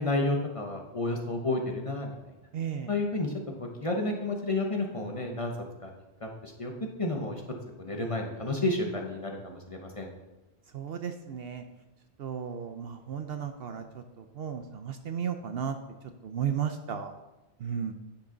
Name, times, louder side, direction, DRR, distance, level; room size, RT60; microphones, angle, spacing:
voice 1, 0.0-2.2 2.9-3.3 3.6-5.5 5.8-5.9 6.2-6.7 7.0-7.4 7.8-10.1, left 2 dB, 30° left, 1 dB, 1.0 m, -31 dB
voice 2, 2.5-2.9 10.7-11.6 12.2-15.8 16.2-17.1 17.6-17.9, right 8 dB, 60° right, 7 dB, 0.8 m, -34 dB
10.0 x 6.2 x 3.9 m, 1.0 s
omnidirectional pair, 1.2 m